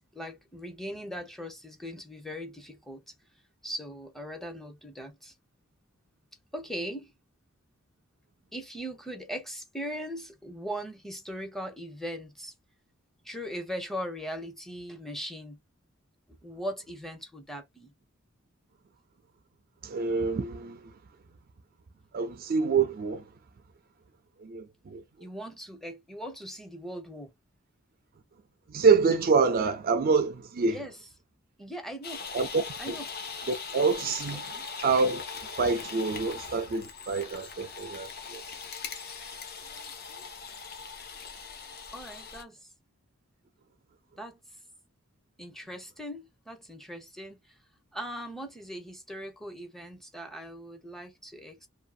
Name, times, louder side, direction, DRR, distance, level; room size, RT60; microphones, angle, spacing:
voice 1, 0.0-3.1 3.6-5.3 6.5-7.1 8.5-12.5 13.2-15.6 16.3-17.9 25.2-27.3 30.7-31.0 31.6-32.3 32.8-33.1 34.5-34.7 41.9-42.7 44.2-44.4 45.4-47.5 47.9-51.7, equal, ahead, 0.6 m, -39 dB
voice 2, 19.8-20.9 22.1-23.2 24.4-25.0 28.7-30.8 32.3-33.0 33.5-34.4 34.8-35.2 35.6-38.4, right 4 dB, 45° right, 0.4 m, -26 dB
Miniature bulldozer, 32.0-42.4, left 5 dB, 45° left, 0.8 m, -40 dB
2.6 x 2.6 x 2.3 m
head